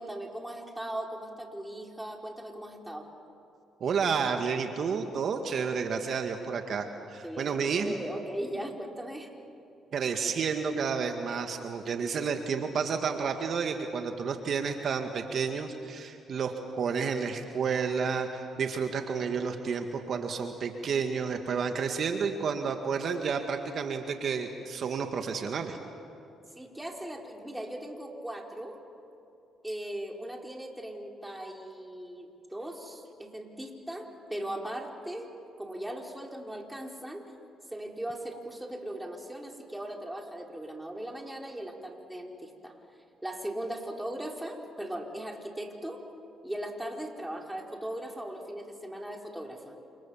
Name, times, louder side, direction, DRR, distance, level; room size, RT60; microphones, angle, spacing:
voice 1, 0.0-3.1 7.2-9.3 26.5-28.8 29.6-37.2 37.7-42.8 43.2-46.0 46.4-49.8, right 1 dB, 5° right, 1 dB, 4.9 m, -38 dB
voice 2, 3.8-7.9 9.9-25.8, right 6 dB, 60° right, 5 dB, 1.9 m, -31 dB
28.5 x 28.5 x 7.4 m, 2.8 s
supercardioid pair, 70°, 0 cm